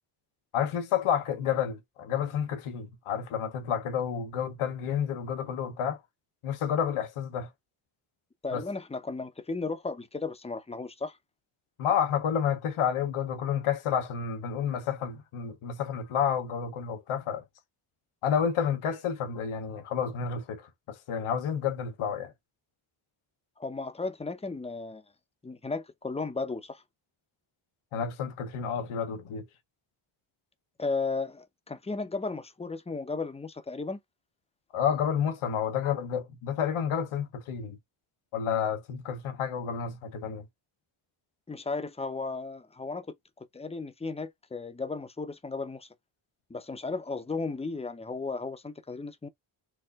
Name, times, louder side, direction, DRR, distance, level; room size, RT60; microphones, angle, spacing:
voice 1, 0.5-6.0 6.4-7.5 8.5-8.6 11.8-17.4 18.2-22.3 27.9-29.4 34.7-37.8 38.3-40.4, left 8 dB, 90° left, 1.0 m, -30 dB
voice 2, 8.4-11.2 23.6-25.0 25.4-26.8 30.8-34.0 41.5-43.1 43.5-45.9 46.5-49.3, left 3 dB, 15° left, 0.6 m, -35 dB
4.5 x 2.6 x 2.4 m
cardioid pair, 100°, 48 cm